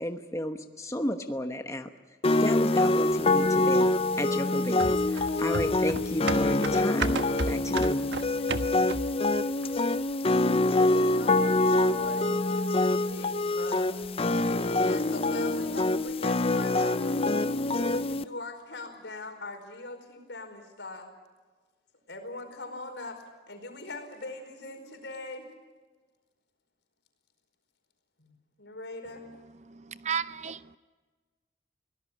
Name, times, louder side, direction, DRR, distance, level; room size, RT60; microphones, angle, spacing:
voice 1, 0.0-1.9 2.4-3.9 4.2-7.2 7.5-8.1, left 1 dB, 15° left, 1.1 m, -33 dB
sound 1, 2.2-18.2, left 2 dB, 35° left, 0.6 m, -25 dB
sound 2, 4.8-9.3 9.6-9.7, right 3 dB, 75° right, 1.3 m, -34 dB
voice 2, 10.4-13.9 14.4-17.0 17.7-21.1 22.1-25.5 28.2-28.3 28.6-29.3, left 2 dB, 90° left, 4.9 m, -41 dB
voice 3, 29.7-30.8, right 7 dB, 40° right, 0.6 m, -34 dB
24.0 x 17.5 x 8.4 m
head